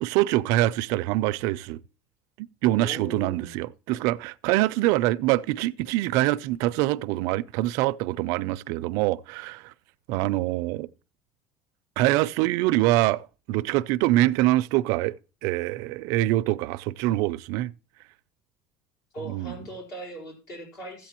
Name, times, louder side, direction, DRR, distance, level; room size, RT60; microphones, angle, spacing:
voice 1, 0.0-1.8 2.4-9.7 10.1-10.9 12.0-15.1 15.4-17.7 19.3-19.5, right 16 dB, 75° right, 0.4 m, -24 dB
voice 2, 2.8-3.5 19.1-21.1, right 1 dB, 65° left, 4.3 m, -39 dB
14.0 x 8.3 x 2.9 m
cardioid pair, 140°, 6 cm